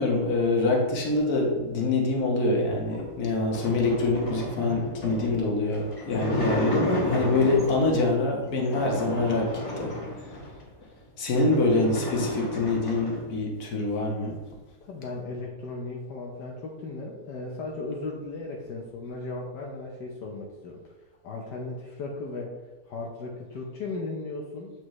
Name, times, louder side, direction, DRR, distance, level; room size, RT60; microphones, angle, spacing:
voice 1, 0.0-9.5 9.8-9.9 11.2-14.4, left 2 dB, 65° left, -1 dB, 1.7 m, -25 dB
sound 1, 2.8-8.0 8.5-10.6 11.1-11.2 11.4-13.3, left 1 dB, 25° left, 1.0 m, -33 dB
voice 2, 5.0-5.4 11.7-12.0 14.8-20.8 21.2-22.6 22.9-24.7, left 3 dB, 80° left, -2 dB, 1.5 m, -36 dB
7.7 x 5.1 x 3.2 m, 1.2 s
omnidirectional pair, 1.8 m